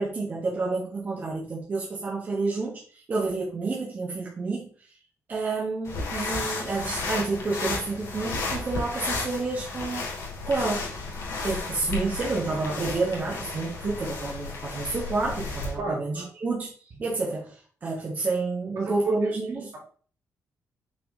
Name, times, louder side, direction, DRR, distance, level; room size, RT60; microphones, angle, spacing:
voice 1, 0.0-4.7 5.3-10.1 10.5-10.9 11.4-19.7, right 3 dB, 30° right, -4 dB, 1.5 m, -29 dB
sound 1, 5.8-15.8, left 3 dB, 70° left, 2.8 m, -33 dB
voice 2, 15.8-16.3 19.0-19.3, right 3 dB, 65° right, -2 dB, 3.3 m, -30 dB
6.2 x 4.8 x 3.8 m, 0.43 s
wide cardioid pair, 165°, 5 cm